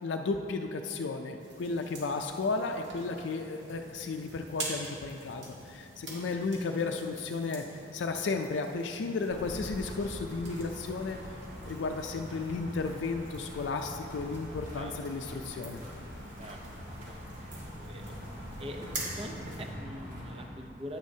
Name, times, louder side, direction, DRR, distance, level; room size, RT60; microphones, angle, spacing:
voice 1, 0.0-7.6 7.9-11.2 11.7-15.8, left 3 dB, 90° left, 4 dB, 0.4 m, -34 dB
sound 1, 1.4-19.7, right 2 dB, 85° right, 1.7 m, -46 dB
voice 2, 6.0-6.5 14.7-15.0 16.4-16.6 16.9-17.3 17.6-18.2 18.6-21.0, equal, 30° right, 3 dB, 0.6 m, -44 dB
sound 2, 9.3-20.5, equal, 50° right, 2.1 m, -44 dB
9.5 x 9.4 x 2.8 m, 2.6 s
head